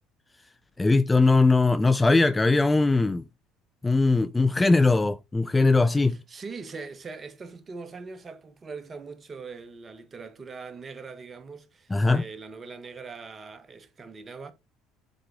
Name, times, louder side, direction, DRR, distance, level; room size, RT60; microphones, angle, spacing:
voice 1, 0.8-3.2 3.8-6.2 11.9-12.2, left 3 dB, 15° left, 0.4 m, -20 dB
voice 2, 6.1-14.5, right 4 dB, 35° right, 1.3 m, -41 dB
7.6 x 3.8 x 3.5 m
hypercardioid pair, 75°, 0 cm